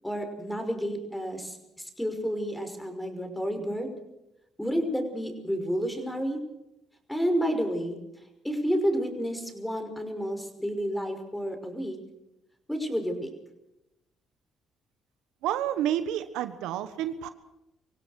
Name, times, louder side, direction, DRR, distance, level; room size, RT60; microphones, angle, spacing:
voice 1, 0.0-3.9 4.6-6.4 7.1-8.0 8.4-12.0 12.7-13.3, equal, 5° left, 7 dB, 5.6 m, -30 dB
voice 2, 15.4-17.3, right 11 dB, 80° right, 11 dB, 1.3 m, -29 dB
25.0 x 16.5 x 6.6 m, 0.90 s
supercardioid pair, 75°, 0 cm